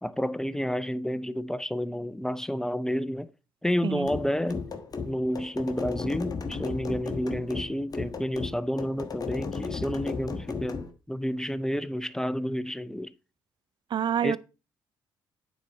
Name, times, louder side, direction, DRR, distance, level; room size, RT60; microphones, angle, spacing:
voice 1, 0.0-3.3 3.6-4.7 5.0-13.1 14.2-14.4, equal, 5° left, 0.6 m, -30 dB
sound 1, 4.0-10.9, left 5 dB, 35° left, 1.3 m, -35 dB
voice 2, 13.9-14.4, right 9 dB, 45° right, 0.5 m, -27 dB
9.3 x 4.1 x 4.1 m
hypercardioid pair, 50°, 11 cm